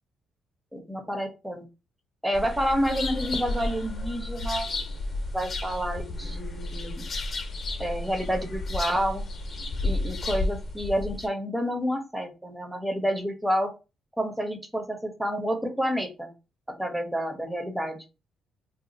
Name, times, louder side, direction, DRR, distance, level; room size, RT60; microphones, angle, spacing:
voice 1, 0.7-1.6 2.2-4.7 5.3-7.1 7.8-9.2 9.8-13.7 14.2-16.3 16.8-18.0, equal, 5° right, 4 dB, 0.9 m, -29 dB
sound 1, 2.3-11.3, left 2 dB, 45° left, 0.8 m, -32 dB
2.6 x 2.3 x 3.9 m, 0.29 s
cardioid pair, 90°, 0 cm